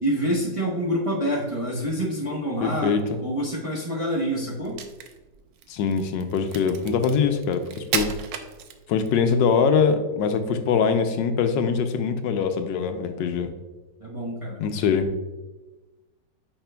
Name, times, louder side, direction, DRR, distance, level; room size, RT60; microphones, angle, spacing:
voice 1, 0.0-2.9 3.2-4.8 14.0-14.6, equal, 25° right, -5 dB, 0.8 m, -27 dB
voice 2, 2.6-3.2 5.7-8.1 8.9-13.5 14.6-15.1, left 6 dB, 80° left, 7 dB, 1.3 m, -23 dB
Crack, 4.6-9.2, right 8 dB, 85° right, 1.3 m, -34 dB
8.6 x 5.8 x 2.2 m, 1.1 s
omnidirectional pair, 1.9 m